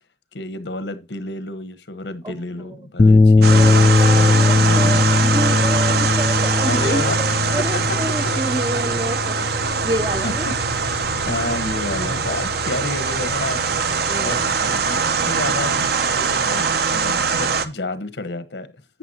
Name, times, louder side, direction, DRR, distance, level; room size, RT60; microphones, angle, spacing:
voice 1, 0.3-5.0 6.6-7.2 7.6-8.2 9.3-9.5 10.2-11.0 11.3-13.7 14.2-18.7, left 2 dB, 80° left, 1.2 m, -30 dB
sound 1, 3.0-11.5, left 3 dB, 25° left, 0.4 m, -18 dB
sound 2, 3.4-17.7, right 5 dB, 60° right, 0.9 m, -22 dB
voice 2, 3.5-9.4 9.7-10.5 14.1-14.4, right 2 dB, 20° right, 0.6 m, -28 dB
sound 3, 4.8-5.3 6.6-8.5 8.9-13.0, right 2 dB, 85° right, 1.0 m, -38 dB
11.0 x 8.3 x 2.8 m
head